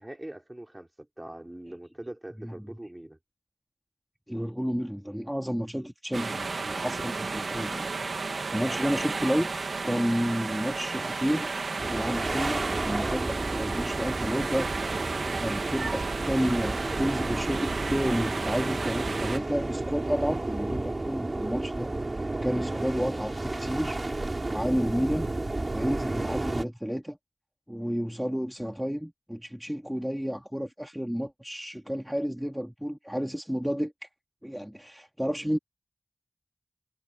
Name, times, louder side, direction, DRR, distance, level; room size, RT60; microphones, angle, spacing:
voice 1, 0.0-3.2 8.5-9.1, right 1 dB, 20° right, 4.4 m, -42 dB
voice 2, 4.3-7.9 8.5-9.5 9.8-11.5 11.9-24.0 24.5-25.3 25.7-27.2 27.7-34.1 34.4-35.6, equal, 5° right, 2.3 m, -31 dB
sound 1, 6.1-19.4, right 4 dB, 90° right, 2.1 m, -33 dB
sound 2, 11.8-26.6, right 2 dB, 45° right, 6.3 m, -32 dB
wide cardioid pair, 50°, 0 cm